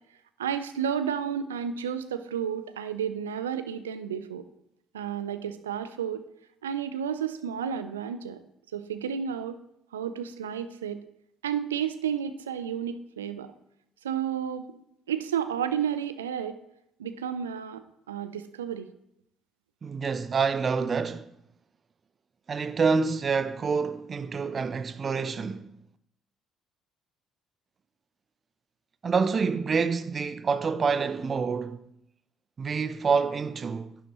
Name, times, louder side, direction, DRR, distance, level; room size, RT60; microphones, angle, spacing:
voice 1, 0.4-4.4 4.9-6.2 6.6-8.4 8.7-9.6 9.9-11.0 11.4-13.5 14.0-14.7 15.1-16.5 17.0-17.8 18.1-18.9, right 8 dB, 85° right, 0.5 m, -31 dB
voice 2, 19.8-21.3 22.5-25.7 29.0-31.9 32.6-34.0, right 5 dB, 40° right, 0.7 m, -27 dB
11.0 x 10.0 x 3.1 m
figure-of-eight pair, 50°, 0 cm